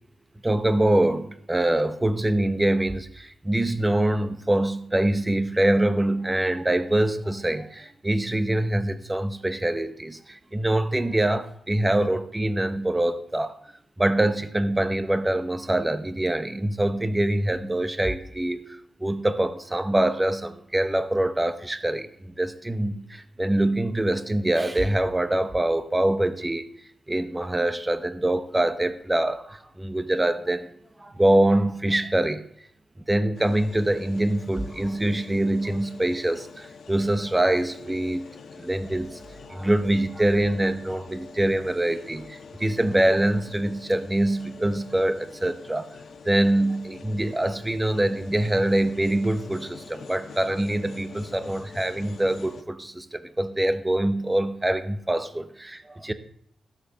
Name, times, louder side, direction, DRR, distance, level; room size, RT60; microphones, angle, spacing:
voice 1, 0.4-13.6 14.0-26.7 27.1-30.7 31.0-32.4 33.1-38.3 38.5-39.2 39.5-45.9 46.2-56.1, right 1 dB, 15° right, 10 dB, 0.8 m, -24 dB
sound 1, 33.3-52.6, left 5 dB, 65° left, 1.1 m, -45 dB
14.5 x 6.7 x 6.8 m, 0.69 s
wide cardioid pair, 120°, 0 cm